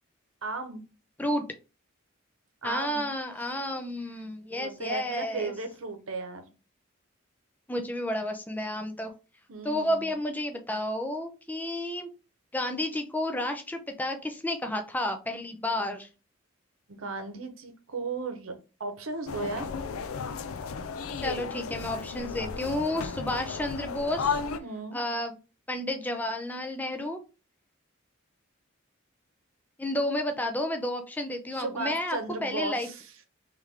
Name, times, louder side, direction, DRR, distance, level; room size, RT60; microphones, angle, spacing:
voice 1, 0.4-0.8 2.6-3.1 4.5-6.5 9.5-10.2 16.9-19.7 24.6-25.0 31.5-33.1, right 3 dB, 80° right, 0.9 m, -35 dB
voice 2, 2.6-5.5 7.7-9.1 9.6-12.1 12.5-16.1 21.2-24.4 24.9-25.4 25.7-27.2 29.8-32.9, left 1 dB, 10° left, 0.4 m, -31 dB
sound 1, 19.3-24.6, left 5 dB, 90° left, 0.4 m, -34 dB
3.4 x 3.2 x 3.6 m
head